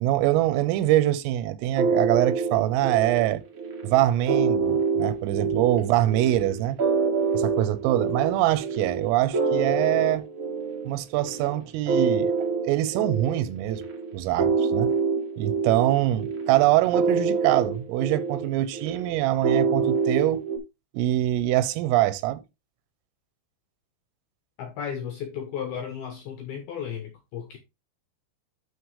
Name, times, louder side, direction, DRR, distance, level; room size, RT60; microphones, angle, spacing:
voice 1, 0.0-3.4 3.8-6.8 7.3-10.3 10.9-12.3 12.6-13.8 14.1-14.9 15.4-20.5 20.9-22.4, right 14 dB, 90° right, 3.4 m, -24 dB
sound 1, 1.7-20.6, right 5 dB, 70° right, 1.2 m, -26 dB
voice 2, 24.6-27.6, left 8 dB, 80° left, 2.3 m, -34 dB
12.0 x 4.8 x 3.2 m
omnidirectional pair, 5.8 m